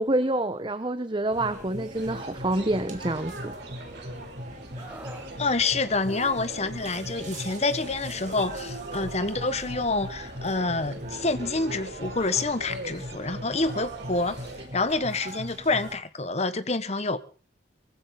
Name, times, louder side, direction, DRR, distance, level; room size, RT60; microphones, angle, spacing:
voice 1, 0.0-3.5, right 1 dB, 25° right, 1.1 m, -27 dB
sound 1, 1.3-16.0, right 1 dB, 45° right, 3.2 m, -40 dB
sound 2, 1.9-14.6, right 1 dB, 65° right, 5.7 m, -42 dB
Screaming, 4.8-5.3 6.8-7.0, right 1 dB, 10° right, 2.7 m, -44 dB
voice 2, 5.4-17.2, left 3 dB, 35° left, 1.4 m, -27 dB
23.5 x 15.5 x 4.0 m
head